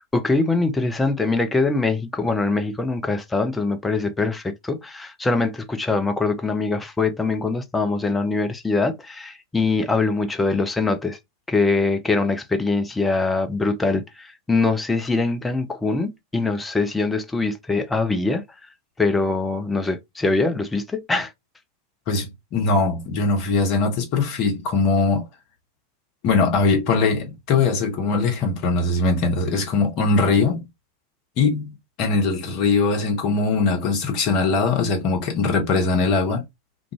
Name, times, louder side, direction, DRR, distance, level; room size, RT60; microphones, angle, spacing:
voice 1, 0.0-11.2 11.5-18.4 19.0-21.3, left 3 dB, 10° left, 0.5 m, -23 dB
voice 2, 22.1-25.2 26.2-30.7 31.4-36.4, left 3 dB, 40° left, 0.9 m, -21 dB
2.5 x 2.3 x 2.9 m
figure-of-eight pair, 90°, 0 cm